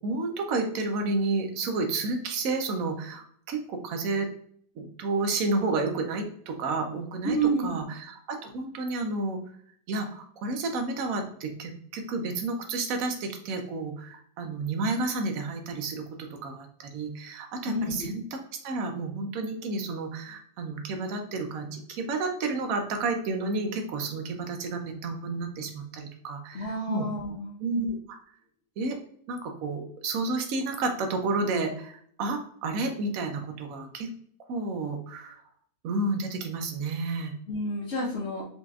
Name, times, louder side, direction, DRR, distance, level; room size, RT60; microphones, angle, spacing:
voice 1, 0.0-4.3 4.8-9.4 9.9-27.1 27.6-28.2 28.8-29.0 29.3-34.1 34.5-35.4 35.8-37.3, right 3 dB, 70° right, 4 dB, 0.8 m, -31 dB
voice 2, 7.2-7.8 17.6-18.1 26.5-27.6 37.5-38.4, right 2 dB, 50° left, -6 dB, 0.9 m, -29 dB
4.1 x 3.0 x 2.3 m, 0.62 s
omnidirectional pair, 2.2 m